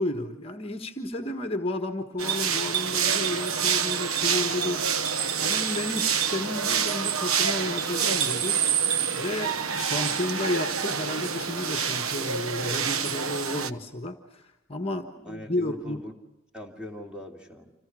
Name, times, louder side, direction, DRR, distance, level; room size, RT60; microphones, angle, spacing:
voice 1, 0.0-8.6 9.1-16.0, left 1 dB, 25° left, 7 dB, 1.4 m, -32 dB
sound 1, 2.2-13.7, right 7 dB, 80° right, 1.0 m, -27 dB
voice 2, 15.2-16.1 16.5-17.7, left 1 dB, 5° right, 3 dB, 2.9 m, -40 dB
29.5 x 27.0 x 6.3 m, 0.89 s
head